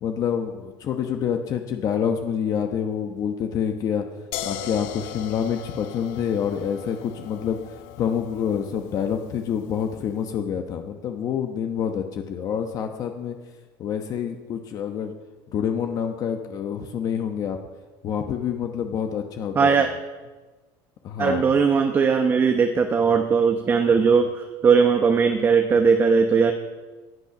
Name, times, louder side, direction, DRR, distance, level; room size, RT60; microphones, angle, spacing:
voice 1, 0.0-4.0 4.4-13.4 13.8-15.1 15.5-17.6 18.0-19.9 21.0-21.6, left 8 dB, 35° left, 5 dB, 1.0 m, -27 dB
sound 1, 4.3-10.1, left 10 dB, 80° left, 1.1 m, -39 dB
voice 2, 19.6-19.9 21.2-26.5, right 5 dB, 20° right, 5 dB, 0.9 m, -19 dB
19.0 x 11.5 x 6.0 m, 1.3 s
cardioid pair, 165°, 10 cm